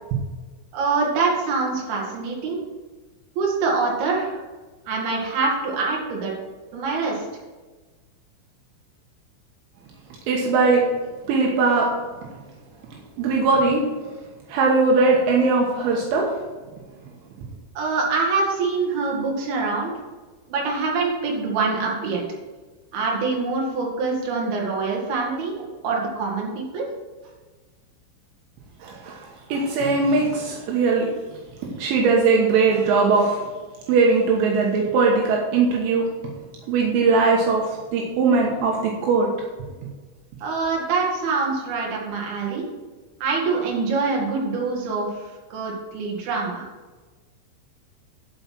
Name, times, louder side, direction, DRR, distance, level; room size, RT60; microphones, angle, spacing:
voice 1, 0.7-2.6 3.4-4.4 4.9-6.3 6.7-7.3 17.8-19.9 20.5-22.2 22.9-25.5 25.8-26.9 40.4-42.6 43.2-46.7, right 4 dB, 55° right, -2 dB, 3.8 m, -25 dB
voice 2, 10.3-10.9 11.3-12.0 13.2-13.9 14.5-16.4 28.8-31.1 31.8-33.5 33.9-36.1 36.7-39.3, right 4 dB, 80° right, -1 dB, 3.7 m, -20 dB
11.5 x 5.8 x 6.0 m, 1.3 s
omnidirectional pair, 5.7 m